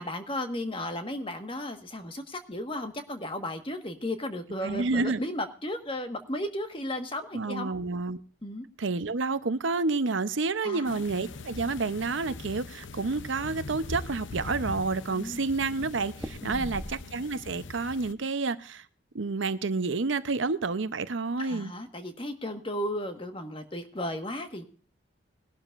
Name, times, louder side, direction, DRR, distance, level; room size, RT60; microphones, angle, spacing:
voice 1, 0.0-7.7 8.4-8.6 10.6-11.0 15.1-15.4 16.4-16.8 21.4-24.6, left 1 dB, 25° left, 1.4 m, -35 dB
voice 2, 4.6-5.2 7.3-8.2 8.8-18.8 19.1-21.7, right 3 dB, 75° right, 0.8 m, -29 dB
sound 1, 10.8-18.1, left 3 dB, 75° left, 0.7 m, -42 dB
sound 2, 12.9-13.2 13.7-13.8 14.0-14.7 16.1-17.4 17.7-18.2, equal, ahead, 0.9 m, -42 dB
20.5 x 12.0 x 2.5 m
head